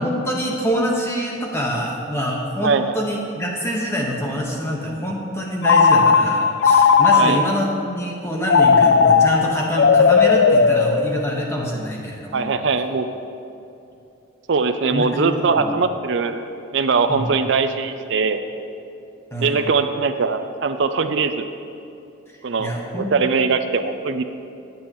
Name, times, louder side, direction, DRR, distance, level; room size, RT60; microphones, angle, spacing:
voice 1, 0.0-12.6 14.9-15.7 17.1-17.3 19.3-19.7 22.6-23.1, equal, 15° left, -2 dB, 1.3 m, -25 dB
voice 2, 2.6-2.9 7.1-7.4 12.3-13.1 14.5-16.4 16.7-18.4 19.4-21.5 22.4-24.2, right 4 dB, 65° right, 9 dB, 0.5 m, -21 dB
Telephone, 5.6-7.6 8.5-11.5, left 5 dB, 65° left, 0.4 m, -15 dB
18.5 x 8.5 x 3.1 m, 2.7 s
head